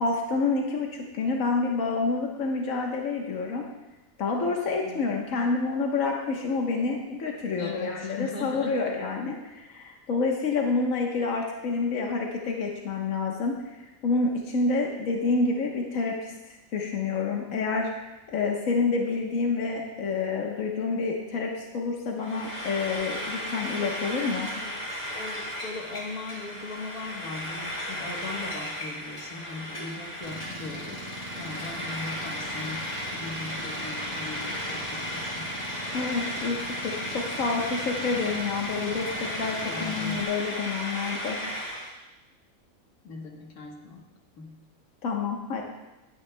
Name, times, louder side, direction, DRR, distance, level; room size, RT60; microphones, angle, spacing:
voice 1, 0.0-3.7 4.2-13.6 14.0-16.3 16.7-17.9 18.3-24.5 35.9-41.4 45.0-45.6, left 4 dB, 65° left, 0 dB, 1.6 m, -28 dB
voice 2, 7.6-8.9 24.5-35.5 39.6-40.2 43.0-44.0 44.4-44.7, left 3 dB, 85° left, 0 dB, 1.8 m, -39 dB
Frying (food), 22.2-41.9, equal, 30° left, 2.2 m, -35 dB
Engine, 30.2-40.2, right 1 dB, 45° right, 1.6 m, -42 dB
19.0 x 9.5 x 2.2 m, 1.0 s
omnidirectional pair, 1.5 m